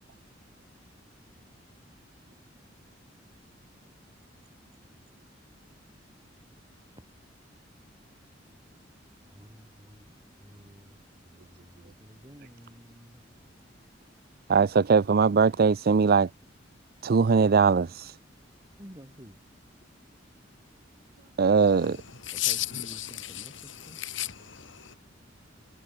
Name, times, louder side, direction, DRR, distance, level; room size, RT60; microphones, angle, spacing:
voice 1, 6.6-7.0 8.5-8.9 9.2-13.2 18.8-19.4 22.3-24.0, equal, 20° right, 8.0 m, -51 dB
voice 2, 14.5-16.3 17.0-18.1 21.4-22.0, right 5 dB, 55° right, 0.5 m, -21 dB
voice 3, 22.2-23.5 24.0-24.9, left 14 dB, 75° left, 1.9 m, -33 dB
head